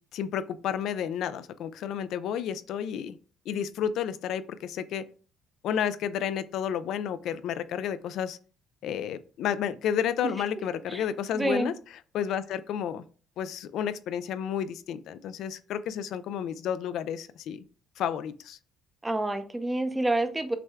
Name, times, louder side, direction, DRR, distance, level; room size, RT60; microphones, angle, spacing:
voice 1, 0.1-3.2 3.5-5.0 5.6-8.4 8.8-13.0 13.4-17.6 18.0-18.6, left 9 dB, 70° left, 13 dB, 0.3 m, -31 dB
voice 2, 11.3-11.7 19.0-20.6, right 2 dB, 10° right, 8 dB, 0.5 m, -28 dB
5.8 x 2.2 x 3.4 m, 0.40 s
cardioid pair, 125°, 0 cm